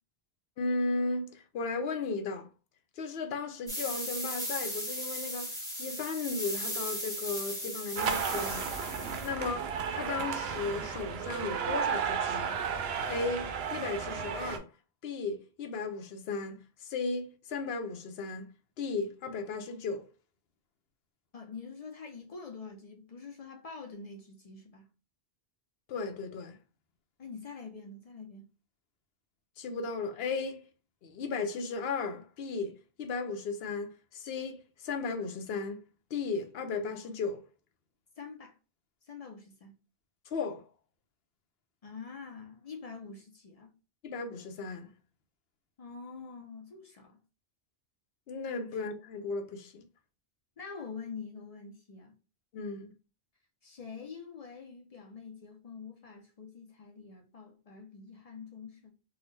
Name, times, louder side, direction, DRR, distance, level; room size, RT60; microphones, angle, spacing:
voice 1, 0.6-2.5 3.0-8.7 9.2-9.6 9.9-12.5 13.1-14.7 15.0-18.5 18.8-20.1 25.9-26.6 29.6-30.6 31.0-32.7 33.0-34.6 34.8-35.8 36.1-37.4 40.3-40.6 44.0-44.9 48.3-49.8 52.5-52.9, left 4 dB, 75° left, 0.8 m, -35 dB
sound 1, 3.7-9.3, equal, 5° left, 0.9 m, -37 dB
sound 2, 8.0-14.6, right 6 dB, 80° right, 0.8 m, -33 dB
voice 2, 21.3-24.9 27.2-28.5 38.2-38.6 39.0-39.8 41.8-43.7 45.8-47.2 50.6-52.2 53.6-58.9, left 5 dB, 50° left, 0.5 m, -46 dB
3.7 x 2.0 x 3.1 m
omnidirectional pair, 1.1 m